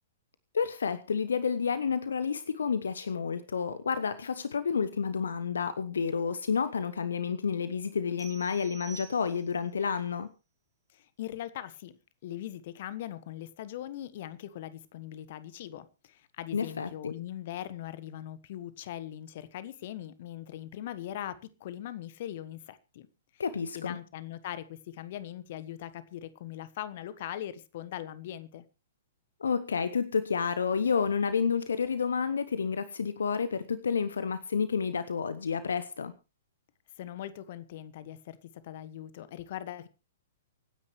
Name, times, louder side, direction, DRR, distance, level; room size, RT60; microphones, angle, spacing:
voice 1, 0.5-10.3 16.5-17.1 23.4-24.0 29.4-36.1, left 6 dB, 65° left, 1.0 m, -30 dB
sound 1, 8.2-9.7, right 5 dB, 10° left, 4.3 m, -49 dB
voice 2, 10.9-12.0 12.2-23.1 23.3-23.4 23.7-28.6 37.0-39.9, left 12 dB, 50° left, 1.3 m, -41 dB
25.0 x 9.8 x 3.2 m
figure-of-eight pair, 110°, 0 cm